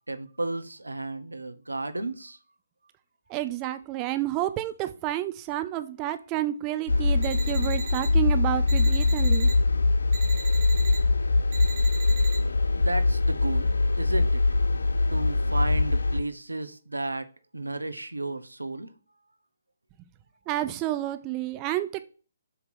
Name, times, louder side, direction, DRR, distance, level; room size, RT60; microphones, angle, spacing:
voice 1, 0.1-2.4 12.7-13.7 14.0-14.4 15.1-17.3 17.5-18.9, right 2 dB, 85° right, 0.7 m, -33 dB
voice 2, 3.3-9.5 20.5-22.0, right 14 dB, 25° right, 0.4 m, -30 dB
sound 1, 6.9-16.2, left 3 dB, 70° left, 0.4 m, -23 dB
sound 2, 7.2-8.1 8.7-9.5 10.1-11.0 11.5-12.4, right 4 dB, 40° right, 1.5 m, -39 dB
7.6 x 2.9 x 6.0 m
figure-of-eight pair, 135°, 0 cm